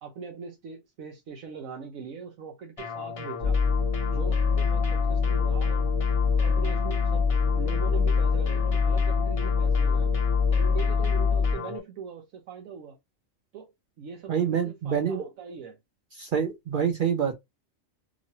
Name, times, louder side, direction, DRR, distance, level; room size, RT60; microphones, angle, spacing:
voice 1, 0.0-3.6 4.0-5.9 6.4-7.3 7.5-10.1 10.5-13.0 13.5-15.8, right 6 dB, 85° right, 1.1 m, -41 dB
sound 1, 2.8-11.8, left 6 dB, 60° left, 0.3 m, -37 dB
sound 2, 3.4-11.5, left 5 dB, 45° right, 0.9 m, -24 dB
voice 2, 14.3-15.2 16.2-17.4, right 7 dB, 65° right, 0.5 m, -26 dB
2.9 x 2.5 x 2.6 m
omnidirectional pair, 1.4 m